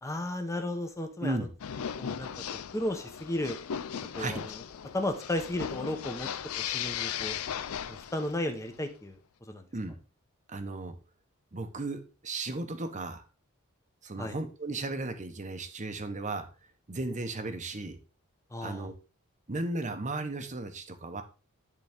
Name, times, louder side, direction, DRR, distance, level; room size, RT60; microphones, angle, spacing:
voice 1, 0.0-1.5 2.0-3.6 4.1-4.6 4.9-6.3 6.6-7.4 7.9-9.2 9.5-9.6 14.2-14.4 18.5-18.9, left 1 dB, 15° left, 6 dB, 0.9 m, -34 dB
voice 2, 1.2-1.5 4.2-4.4 9.7-10.0 10.5-10.9 11.5-13.2 14.0-16.5 16.9-18.0 18.6-18.9 19.5-21.2, right 2 dB, 35° right, 8 dB, 0.9 m, -35 dB
sound 1, 1.6-8.5, left 8 dB, 75° left, 0.5 m, -37 dB
10.5 x 3.8 x 3.5 m, 0.35 s
head